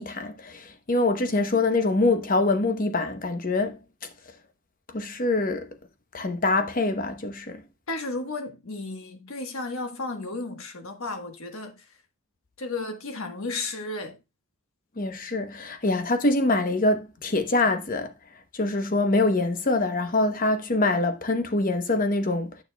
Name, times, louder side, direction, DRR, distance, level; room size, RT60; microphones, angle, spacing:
voice 1, 0.0-3.8 4.9-5.7 6.1-7.6 15.0-18.1 18.5-22.5, left 2 dB, 40° left, 0.8 m, -24 dB
voice 2, 7.9-11.8 12.6-14.2, left 3 dB, 65° left, 1.3 m, -33 dB
9.3 x 6.4 x 2.2 m
head